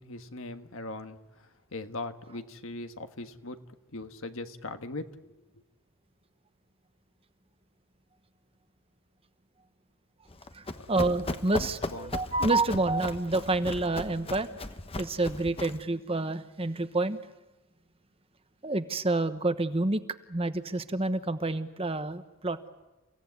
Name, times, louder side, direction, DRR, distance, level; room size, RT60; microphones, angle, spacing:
voice 1, 0.0-3.6 3.9-5.3 10.7-10.9 11.6-12.1, left 2 dB, 70° left, 8 dB, 1.5 m, -40 dB
Run, 10.3-15.9, left 2 dB, 25° left, 1.1 m, -37 dB
voice 2, 10.5-14.5 15.0-17.2 18.6-20.0 20.3-22.6, right 2 dB, 25° right, 10 dB, 1.1 m, -28 dB
29.5 x 17.0 x 9.6 m, 1.1 s
head